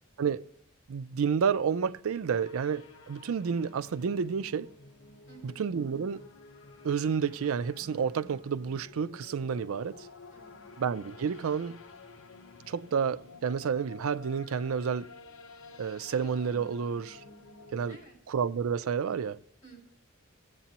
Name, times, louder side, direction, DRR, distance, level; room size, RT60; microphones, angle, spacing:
voice 1, 0.9-4.7 5.4-6.3 6.8-10.1 10.8-11.8 12.7-15.1 15.8-17.2 17.7-18.0 18.3-19.4, right 6 dB, 85° right, 0.4 m, -30 dB
sound 1, 2.3-18.0, left 3 dB, 75° left, 0.9 m, -51 dB
voice 2, 5.3-5.6 10.3-10.8 17.9-18.4 19.6-19.8, right 4 dB, 40° left, 5.0 m, -54 dB
16.0 x 8.2 x 2.9 m
head